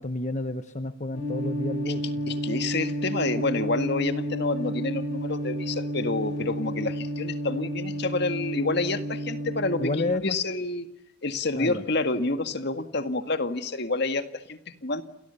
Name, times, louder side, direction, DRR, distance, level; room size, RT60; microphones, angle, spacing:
voice 1, 0.0-2.2 9.8-10.4 11.6-11.8, left 2 dB, 35° left, 9 dB, 1.1 m, -30 dB
sound 1, 1.1-10.1, right 1 dB, 85° left, 4.9 m, -31 dB
voice 2, 2.3-10.9 11.2-15.0, left 2 dB, 55° left, 9 dB, 1.9 m, -28 dB
30.0 x 28.5 x 6.9 m, 0.78 s
head